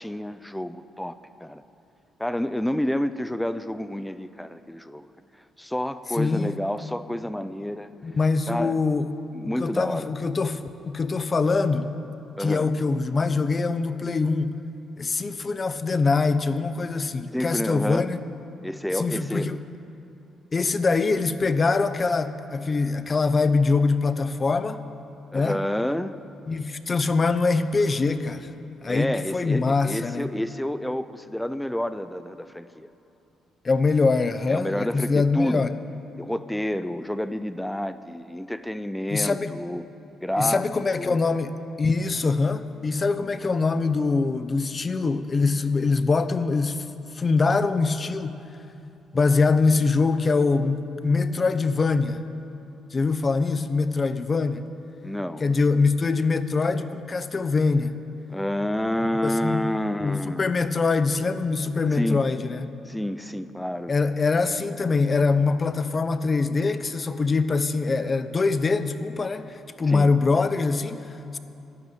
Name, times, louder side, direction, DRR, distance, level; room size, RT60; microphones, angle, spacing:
voice 1, 0.0-1.6 2.2-5.1 5.6-7.9 8.5-8.8 9.3-10.1 12.4-12.7 17.3-18.1 18.6-19.5 25.3-26.2 28.9-32.9 34.5-35.7 36.2-39.8 40.2-40.6 41.0-41.2 55.0-55.4 58.3-60.4 61.9-62.2 62.9-63.9 69.9-70.1, left 1 dB, 5° left, 12 dB, 0.6 m, -29 dB
voice 2, 6.2-6.5 8.0-9.1 9.4-11.9 12.4-14.6 15.0-18.2 18.9-19.6 20.5-24.8 25.3-25.6 26.5-28.5 28.8-30.3 33.6-35.7 39.1-39.5 40.4-46.8 47.1-48.4 49.1-52.2 52.9-54.7 55.4-58.0 59.2-59.6 60.0-62.7 63.9-71.4, left 4 dB, 35° left, 11 dB, 0.8 m, -23 dB
13.0 x 12.0 x 9.2 m, 2.8 s
cardioid pair, 90°, 0 cm